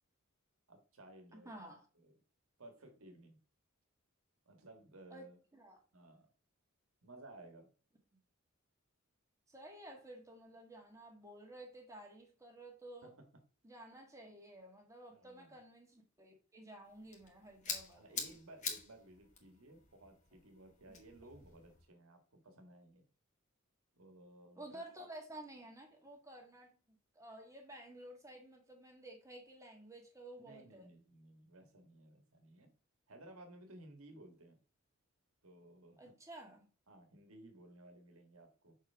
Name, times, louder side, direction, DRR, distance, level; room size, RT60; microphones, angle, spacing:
voice 1, 0.7-1.5 2.0-2.1 2.6-3.4 4.5-5.4 5.9-6.3 7.0-7.7 13.0-13.3 15.1-15.6 18.0-23.1 23.9-24.8 30.4-32.7 33.1-34.6 35.4-36.2 36.9-38.8, right 1 dB, 80° right, 1.7 m, -57 dB
voice 2, 1.3-1.8 5.1-5.8 8.1-8.2 9.5-13.1 13.6-18.2 24.5-30.9 36.0-36.7, right 1 dB, 15° right, 1.6 m, -53 dB
sound 1, 16.8-21.9, left 5 dB, 35° left, 1.7 m, -46 dB
7.0 x 4.5 x 3.5 m
head